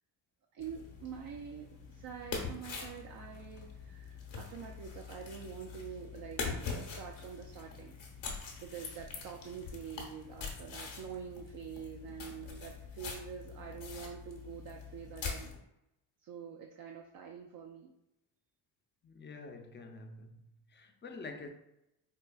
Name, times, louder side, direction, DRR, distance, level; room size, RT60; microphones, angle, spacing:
voice 1, 0.5-8.0 8.6-15.5 16.2-17.9, right 7 dB, 50° right, 0.4 m, -46 dB
sound 1, 0.6-15.6, left 5 dB, 75° left, 0.9 m, -44 dB
voice 2, 19.0-20.4 20.7-21.5, left 3 dB, 25° left, 0.4 m, -47 dB
4.4 x 2.3 x 2.2 m
cardioid pair, 70°, 47 cm